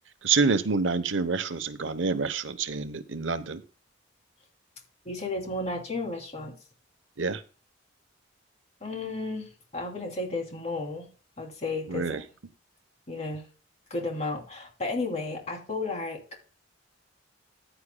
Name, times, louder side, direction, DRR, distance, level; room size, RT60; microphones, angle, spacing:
voice 1, 0.2-3.6 7.2-7.4 11.9-12.2, right 4 dB, 70° right, 12 dB, 0.9 m, -27 dB
voice 2, 5.0-6.5 8.8-11.1 11.4-12.2 13.1-13.5 13.9-16.2, left 2 dB, 35° left, 2 dB, 3.0 m, -33 dB
15.0 x 9.9 x 2.2 m, 0.35 s
head